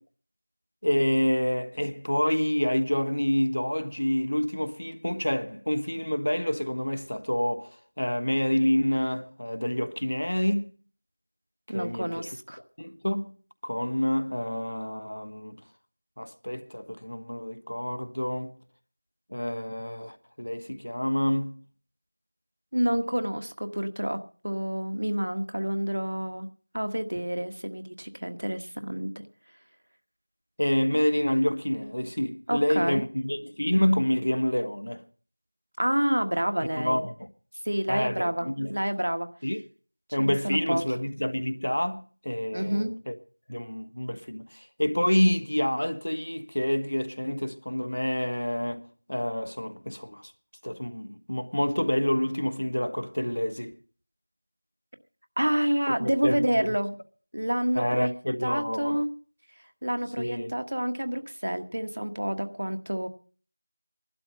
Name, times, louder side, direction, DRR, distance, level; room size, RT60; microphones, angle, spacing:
voice 1, 0.8-10.7 11.7-12.3 12.8-13.4 13.6-15.6 16.2-18.6 19.3-21.6 30.6-35.0 36.8-37.3 37.9-38.8 39.4-39.6 40.1-43.1 43.5-50.3 50.6-53.8 55.9-56.7 57.7-59.0 60.2-60.5, left 1 dB, 70° left, 1.5 m, -28 dB
voice 2, 11.7-12.6 22.7-26.5 26.7-29.1 32.5-33.0 35.8-37.1 37.6-39.3 40.2-40.8 42.5-42.9 55.4-57.0 57.3-58.1 58.4-59.1 59.8-63.1, equal, 50° right, 1.4 m, -28 dB
15.5 x 12.0 x 5.4 m
figure-of-eight pair, 180°, 0 cm